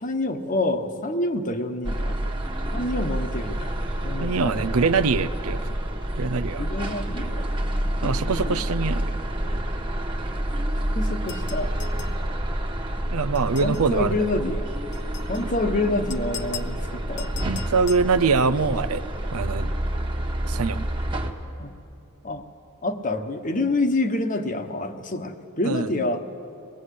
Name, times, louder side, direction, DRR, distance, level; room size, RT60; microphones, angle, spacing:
voice 1, 0.0-2.2 2.7-3.7 4.0-4.6 6.6-7.5 7.7-8.6 10.9-11.7 13.6-14.7 15.3-17.3 21.6-21.7 22.2-22.4 22.8-26.2, left 2 dB, 35° left, 7 dB, 1.3 m, -27 dB
sound 1, 1.8-21.3, right 1 dB, 20° right, 1.4 m, -28 dB
voice 2, 4.2-5.6 6.2-6.6 8.0-9.0 13.1-14.4 17.4-19.0 19.3-19.7 20.4-20.9 25.6-25.9, right 4 dB, 70° right, 12 dB, 0.6 m, -23 dB
sound 2, 11.3-12.2 13.3-13.9 14.9-15.5 16.1-16.7 17.2-18.1, left 10 dB, 55° left, 1.0 m, -40 dB
22.0 x 20.0 x 8.4 m, 2.7 s
head